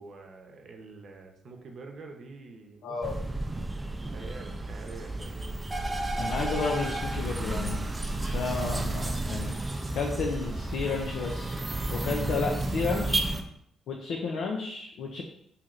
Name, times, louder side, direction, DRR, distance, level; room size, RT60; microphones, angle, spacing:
voice 1, 0.0-3.0 4.1-5.3, right 3 dB, 60° right, 2 dB, 0.7 m, -46 dB
voice 2, 2.8-3.2 6.2-7.8 8.2-11.6 11.9-13.4 13.9-15.2, left 4 dB, 75° left, 1 dB, 0.5 m, -32 dB
sound 1, 3.0-13.4, right 2 dB, 20° right, 0.4 m, -32 dB
3.1 x 2.8 x 3.8 m, 0.73 s
cardioid pair, 75°, 0 cm